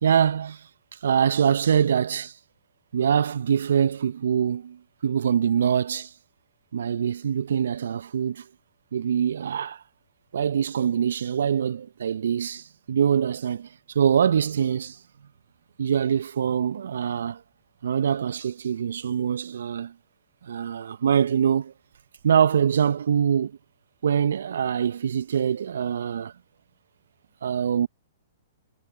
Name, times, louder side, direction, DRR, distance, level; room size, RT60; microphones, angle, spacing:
voice 1, 0.0-0.6 1.0-2.3 2.9-6.1 6.7-8.5 8.9-9.8 10.3-13.7 13.9-15.0 15.8-17.4 17.8-19.9 20.4-21.7 22.2-23.6 24.0-26.3 27.4-27.9, right 8 dB, 70° right, 0.7 m, -24 dB
figure-of-eight pair, 115°, 0 cm